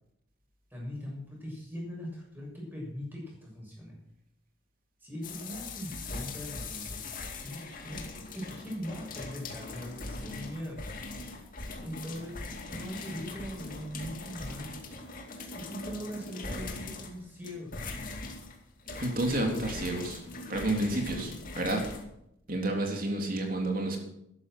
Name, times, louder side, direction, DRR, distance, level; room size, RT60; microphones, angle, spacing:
voice 1, 0.7-4.0 5.0-7.0 7.4-8.0 8.3-10.8 11.8-14.8 15.5-17.7, equal, 10° right, -3 dB, 6.8 m, -40 dB
sound 1, 5.2-22.0, left 3 dB, 40° left, 2.4 m, -41 dB
voice 2, 19.0-20.2 20.5-21.9 22.5-24.0, right 1 dB, 45° right, 1 dB, 3.4 m, -30 dB
13.5 x 12.0 x 6.3 m, 0.79 s
head